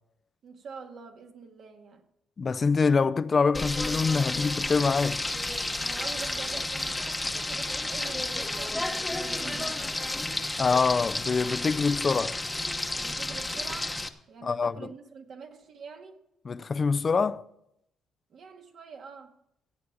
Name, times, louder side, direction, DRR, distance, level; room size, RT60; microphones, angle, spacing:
voice 1, 0.4-2.0 5.8-9.9 13.0-14.0 14.3-16.2 18.3-19.3, right 5 dB, 60° right, 1.9 m, -45 dB
voice 2, 2.4-5.2 10.6-12.4 14.4-14.9 16.5-17.4, left 5 dB, 35° left, 0.5 m, -25 dB
Frying (food), 3.5-14.1, left 2 dB, 10° left, 1.0 m, -31 dB
15.5 x 8.3 x 6.1 m
cardioid pair, 100°, 0 cm